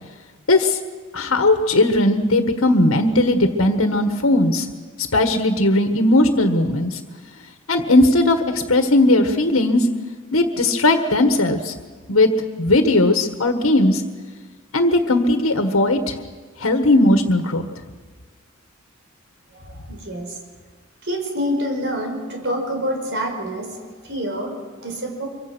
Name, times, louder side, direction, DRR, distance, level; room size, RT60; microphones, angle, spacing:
voice 1, 0.5-0.8 1.1-4.7 5.0-7.0 7.7-9.9 10.3-11.7 12.1-12.3 12.6-14.0 14.7-16.1 16.6-17.7, left 2 dB, 90° left, 6 dB, 1.6 m, -17 dB
voice 2, 19.5-20.4 21.0-25.3, equal, 60° right, 3 dB, 5.1 m, -27 dB
25.0 x 24.5 x 6.2 m, 1.4 s
head